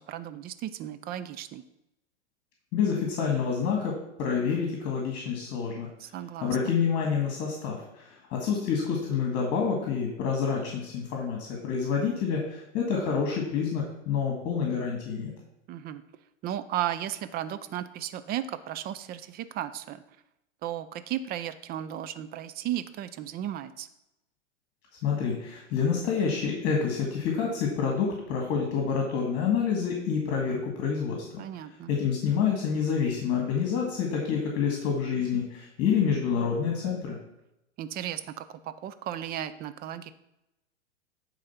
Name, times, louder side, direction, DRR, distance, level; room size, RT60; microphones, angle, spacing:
voice 1, 0.0-1.6 6.0-6.7 15.7-16.0 16.4-20.0 20.6-23.9 31.4-31.9 37.8-40.1, right 11 dB, 25° right, 12 dB, 0.5 m, -35 dB
voice 2, 2.7-5.9 6.4-15.3 25.0-31.2 31.9-37.2, left 6 dB, 40° left, 1 dB, 2.0 m, -28 dB
9.7 x 4.0 x 5.7 m, 0.88 s
hypercardioid pair, 105°, 36 cm